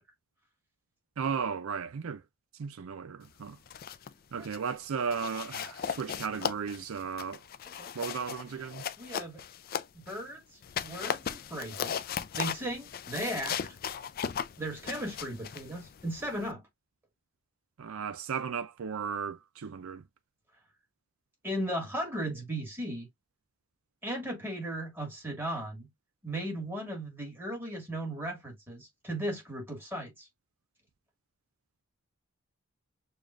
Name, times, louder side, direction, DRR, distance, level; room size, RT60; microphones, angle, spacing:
voice 1, 1.2-2.2 2.6-3.6 4.3-7.4 7.9-8.8 17.8-20.0, right 6 dB, 75° right, 0.4 m, -35 dB
sound 1, 3.5-4.1 4.4-4.7 5.1-10.2 10.6-16.5, left 8 dB, 45° left, 0.3 m, -37 dB
voice 2, 9.0-9.4 9.9-12.0 12.4-13.8 14.6-16.6 21.4-23.1 24.0-25.9 26.2-30.3, right 1 dB, 10° right, 1.8 m, -36 dB
6.7 x 2.4 x 2.5 m
head